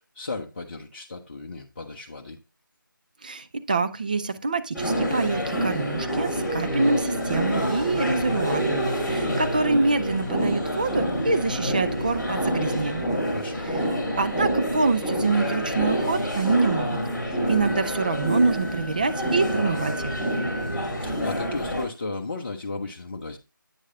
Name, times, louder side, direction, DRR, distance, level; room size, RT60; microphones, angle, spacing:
voice 1, 0.0-2.4 13.2-13.6 20.6-23.4, left 3 dB, 35° left, -1 dB, 0.7 m, -35 dB
voice 2, 3.2-13.1 13.6-13.8 14.2-17.0 17.3-20.1, right 3 dB, 25° right, 9 dB, 0.5 m, -25 dB
sound 1, 4.7-21.9, equal, 5° right, 1.8 m, -27 dB
Wind instrument woodwind instrument, 17.5-21.0, equal, 20° left, 1.8 m, -40 dB
8.8 x 6.3 x 2.6 m, 0.27 s
figure-of-eight pair, 160°, 11 cm